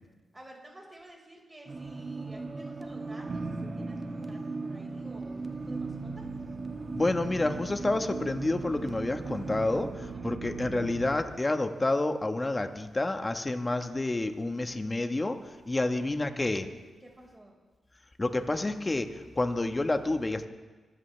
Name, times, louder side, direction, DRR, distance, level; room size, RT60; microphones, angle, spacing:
voice 1, 0.3-6.2 10.0-10.2 15.7-16.2 17.0-17.6, right 1 dB, 20° right, -1 dB, 5.3 m, -52 dB
sound 1, 1.7-9.9, right 3 dB, 40° right, 1.7 m, -38 dB
sound 2, 3.3-4.7 4.9-11.1, right 3 dB, 60° right, 1.5 m, -42 dB
voice 2, 6.9-15.4 15.7-16.7 18.2-20.5, left 2 dB, 25° left, 7 dB, 1.4 m, -29 dB
25.5 x 14.5 x 3.5 m, 1.3 s
supercardioid pair, 50°, 0 cm